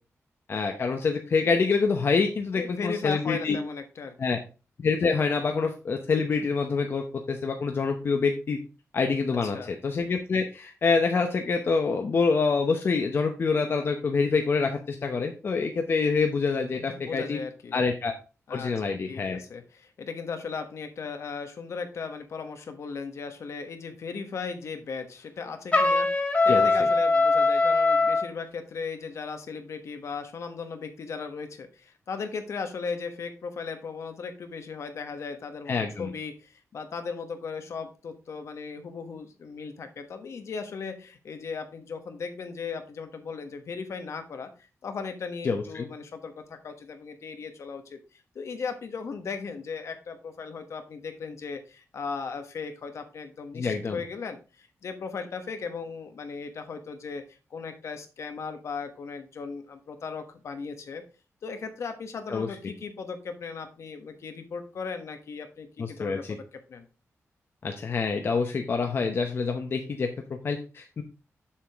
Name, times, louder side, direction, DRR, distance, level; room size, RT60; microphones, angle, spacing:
voice 1, 0.5-3.6 4.2-4.4 4.8-8.6 8.9-17.4 17.7-18.1 18.5-19.4 26.5-26.7 35.7-36.1 45.4-45.9 53.5-54.0 62.3-62.5 65.8-66.4 67.6-71.0, left 4 dB, 45° left, 5 dB, 0.8 m, -26 dB
voice 2, 2.5-4.4 9.4-9.7 16.7-17.8 18.5-18.7 19.1-44.5 44.8-57.2 57.5-61.0 61.4-66.4 66.7-66.9, left 5 dB, 65° left, 7 dB, 1.2 m, -37 dB
Trumpet, 25.7-28.3, left 3 dB, 25° left, 1.4 m, -21 dB
7.2 x 6.8 x 3.5 m, 0.32 s
wide cardioid pair, 160°, 5 cm